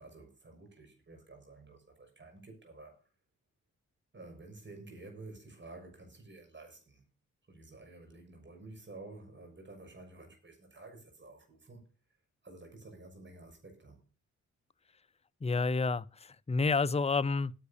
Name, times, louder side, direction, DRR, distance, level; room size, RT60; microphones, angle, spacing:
voice 1, 0.0-3.0 4.1-7.0 7.5-11.8 12.4-14.0, right 2 dB, 35° right, 6.4 m, -51 dB
voice 2, 15.4-17.5, left 4 dB, 20° left, 0.6 m, -29 dB
10.0 x 8.2 x 6.8 m
cardioid pair, 60°, 31 cm